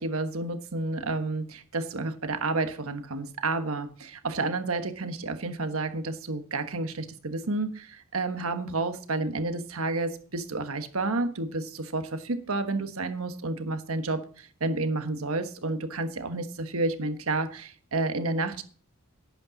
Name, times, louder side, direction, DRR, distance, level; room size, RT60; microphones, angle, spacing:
voice 1, 0.0-18.6, right 2 dB, 80° right, 1.3 m, -30 dB
11.5 x 8.8 x 4.0 m
head